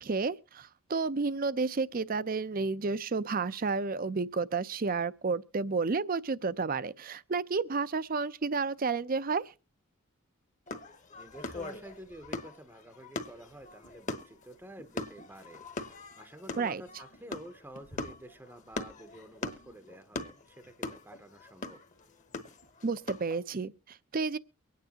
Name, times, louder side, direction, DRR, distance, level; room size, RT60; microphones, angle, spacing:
voice 1, 0.0-9.5 16.6-16.8 22.8-24.4, right 4 dB, 40° right, 0.5 m, -31 dB
sound 1, 10.7-23.4, left 2 dB, 35° left, 1.1 m, -41 dB
voice 2, 11.2-21.8, right 1 dB, 10° right, 0.7 m, -50 dB
24.0 x 9.4 x 2.8 m
head